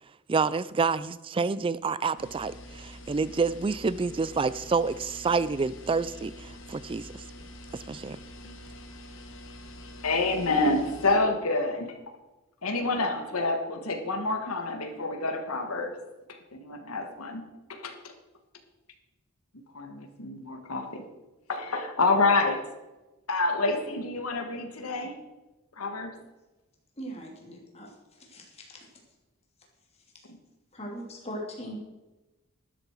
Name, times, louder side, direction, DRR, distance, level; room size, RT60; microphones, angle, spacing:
voice 1, 0.3-7.1 7.7-8.2, right 4 dB, 25° right, 17 dB, 0.3 m, -28 dB
sound 1, 2.2-11.2, left 1 dB, 60° left, 1.6 m, -46 dB
voice 2, 10.0-12.0 12.6-16.0 16.3-17.4 17.7-18.1 19.7-21.0 21.5-22.7 23.3-25.1 25.8-26.1, left 3 dB, 85° left, 5 dB, 1.6 m, -28 dB
voice 3, 27.0-28.9 30.7-31.8, equal, 30° left, -1 dB, 2.6 m, -40 dB
12.5 x 10.5 x 4.6 m, 1.1 s
head